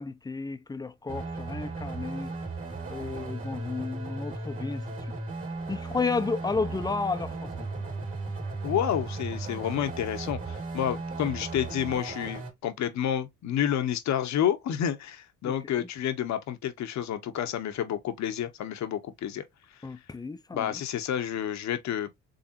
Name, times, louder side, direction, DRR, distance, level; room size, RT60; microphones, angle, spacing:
voice 1, 0.0-2.3 2.9-5.1 5.7-7.7 15.4-15.9 19.8-20.8, left 4 dB, 15° left, 0.4 m, -33 dB
sound 1, 1.1-12.5, right 3 dB, 45° right, 2.0 m, -36 dB
voice 2, 8.6-19.4 20.5-22.2, left 10 dB, 65° left, 0.8 m, -29 dB
3.9 x 3.5 x 2.6 m
cardioid pair, 90°, 30 cm